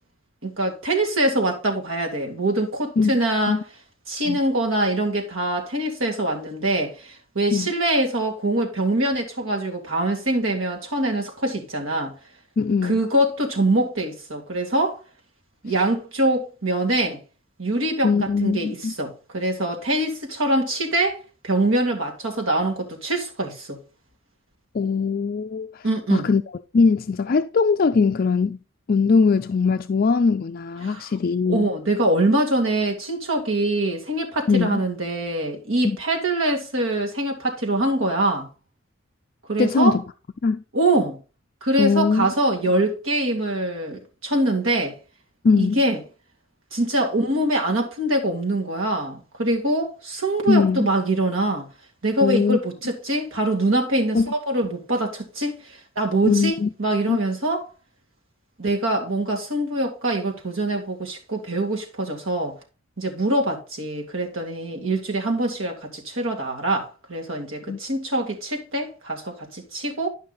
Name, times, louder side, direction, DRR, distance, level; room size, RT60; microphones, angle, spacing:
voice 1, 0.4-3.6 4.1-12.1 12.8-15.0 15.6-17.2 17.6-21.2 21.4-23.8 25.8-26.3 30.8-31.1 31.5-38.5 39.5-40.0 40.7-41.2 41.6-45.0 45.5-46.0 46.7-51.7 52.0-57.6 58.6-62.6 63.0-70.1, right 1 dB, 80° right, 2.2 m, -24 dB
voice 2, 12.6-13.0 18.0-18.9 24.7-26.4 26.7-28.6 28.9-31.7 34.5-34.8 35.8-36.0 39.6-40.0 40.4-40.6 41.8-42.3 45.4-45.8 50.5-50.9 52.2-52.6 54.1-54.3 56.2-56.7 57.1-57.2 67.7-67.8, left 4 dB, 45° left, 0.4 m, -21 dB
11.5 x 5.5 x 4.0 m
head